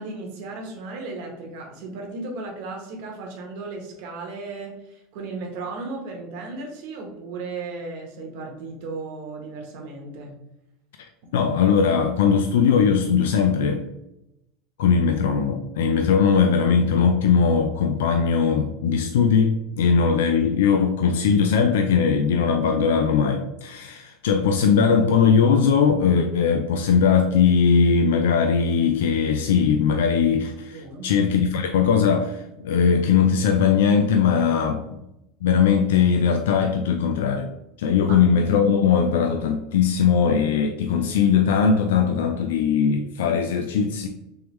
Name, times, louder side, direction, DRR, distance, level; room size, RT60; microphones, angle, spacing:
voice 1, 0.0-10.4 19.9-20.0 30.7-31.1 38.1-38.2, right 3 dB, 70° right, 1 dB, 1.0 m, -35 dB
voice 2, 11.3-13.8 14.8-35.0 35.4-37.5 37.8-44.1, left 6 dB, 85° left, 5 dB, 0.3 m, -20 dB
3.4 x 3.2 x 3.0 m, 0.86 s
supercardioid pair, 110°, 0 cm